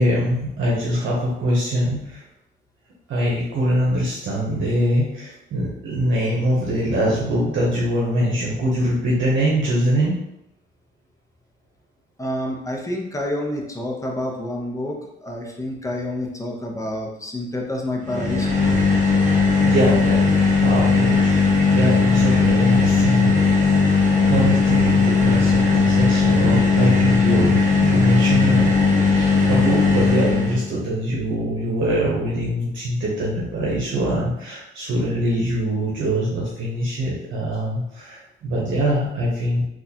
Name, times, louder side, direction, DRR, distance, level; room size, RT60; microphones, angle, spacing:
voice 1, 0.0-2.2 3.1-10.1 19.6-24.0 24.3-28.8 29.0-39.6, equal, 75° right, -5 dB, 0.9 m, -23 dB
voice 2, 12.2-18.6, left 1 dB, 15° left, 0 dB, 0.7 m, -28 dB
sound 1, 18.0-30.6, left 4 dB, 40° right, 0.9 m, -17 dB
3.8 x 2.4 x 2.8 m, 0.83 s
cardioid pair, 90°, 20 cm